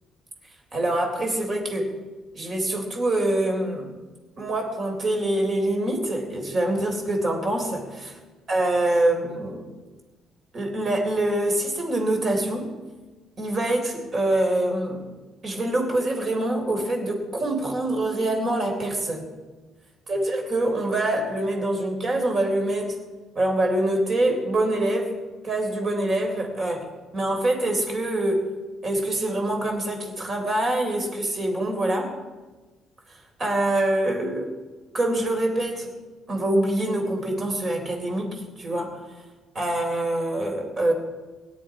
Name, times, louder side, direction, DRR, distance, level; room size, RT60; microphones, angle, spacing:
voice 1, 0.7-1.9 2.3-3.9 4.4-8.1 8.5-9.6 10.5-12.7 13.4-15.0 15.4-19.3 20.1-23.0 23.4-25.2 25.4-26.8 27.1-28.4 28.8-32.1 33.1-34.5 34.9-35.9 36.3-39.0 39.5-40.9, right 1 dB, 30° right, 2 dB, 3.8 m, -25 dB
23.0 x 10.5 x 4.9 m, 1.3 s
cardioid pair, 170°, 0 cm